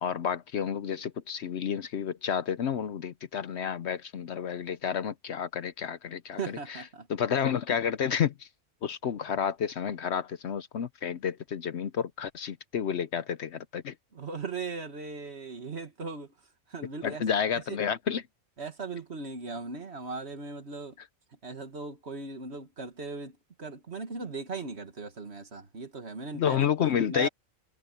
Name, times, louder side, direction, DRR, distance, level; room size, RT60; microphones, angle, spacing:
voice 1, 0.0-6.8 7.1-8.5 8.8-13.9 17.0-18.2 26.3-27.3, left 8 dB, 60° left, 0.9 m, -30 dB
voice 2, 6.4-7.1 14.1-16.3 16.7-17.2 17.7-17.8 18.6-20.9 21.4-27.3, right 4 dB, 55° right, 2.0 m, -38 dB
omnidirectional pair, 1.4 m